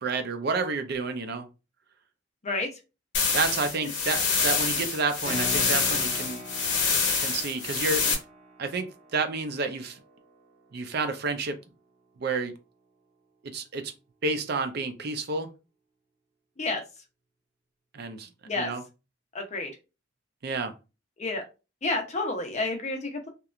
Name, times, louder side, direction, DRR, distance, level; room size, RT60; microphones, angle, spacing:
voice 1, 0.0-1.5 3.3-6.4 7.2-8.2 8.6-10.0 10.7-11.6 12.2-12.5 13.5-13.8 14.2-15.5 17.9-18.3 18.6-18.8 20.4-20.7, right 3 dB, 55° right, 0.5 m, -30 dB
sound 1, 3.1-8.1, left 5 dB, 70° left, 0.9 m, -26 dB
Keyboard (musical), 5.2-11.3, equal, 80° right, 1.1 m, -42 dB
voice 2, 19.3-19.7 21.2-21.4 21.8-23.3, left 3 dB, 35° left, 0.6 m, -30 dB
2.9 x 2.2 x 2.4 m
head